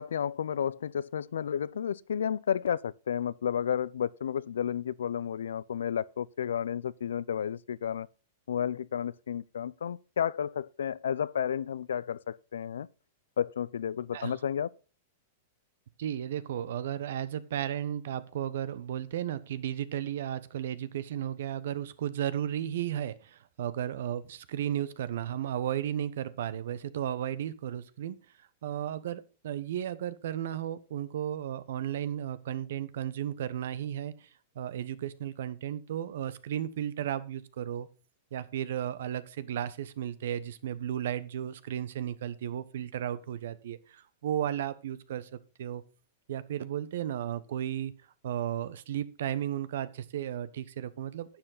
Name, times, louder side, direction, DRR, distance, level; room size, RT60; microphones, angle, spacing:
voice 1, 0.0-8.1 8.5-12.9 13.4-14.7, left 8 dB, 85° left, 0.5 m, -32 dB
voice 2, 16.0-28.2 28.6-34.3 34.5-37.9 38.3-45.3 45.6-45.8 46.3-47.9 48.2-51.4, right 10 dB, 70° right, 1.1 m, -34 dB
11.5 x 7.9 x 3.9 m
hypercardioid pair, 115°, 0 cm